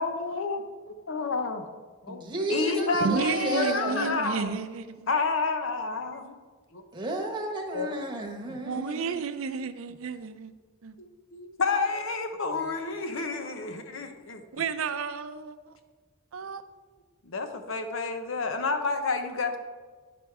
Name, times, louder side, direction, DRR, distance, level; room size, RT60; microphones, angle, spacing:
voice 1, 0.0-1.7 2.0-2.2 2.5-4.6 5.1-6.4 6.7-6.8 7.7-7.9 11.0-14.4 16.4-16.5 17.2-19.6, left 4 dB, 75° left, 0.8 m, -30 dB
voice 2, 2.1-4.1 6.9-9.2, right 1 dB, 20° right, 1.1 m, -32 dB
voice 3, 3.0-5.1 8.5-10.6 10.8-11.0 14.5-15.7 16.3-16.6, right 5 dB, 90° right, 0.5 m, -32 dB
10.5 x 5.0 x 4.6 m
head